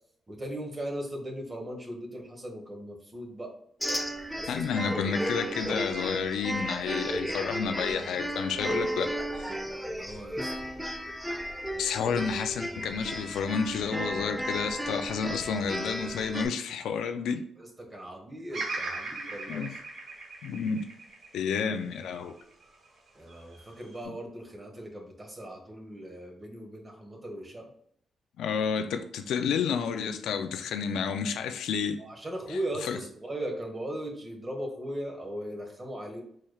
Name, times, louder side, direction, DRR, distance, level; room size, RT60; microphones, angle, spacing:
voice 1, 0.3-3.5 4.3-4.9 5.8-6.1 9.9-10.9 11.7-11.9 17.6-19.7 23.1-27.7 32.0-36.2, right 1 dB, 25° right, 1.4 m, -38 dB
sound 1, 3.8-16.5, equal, 5° right, 0.6 m, -34 dB
voice 2, 4.5-9.5 11.8-17.4 19.5-19.7 20.4-20.9 21.3-22.3 28.4-32.0 32.9-33.0, left 6 dB, 90° left, 0.4 m, -30 dB
Bird vocalization bird call bird song, 18.5-22.7 23.3-24.0, right 3 dB, 60° right, 1.2 m, -39 dB
5.0 x 4.3 x 2.3 m
cardioid pair, 90°, 0 cm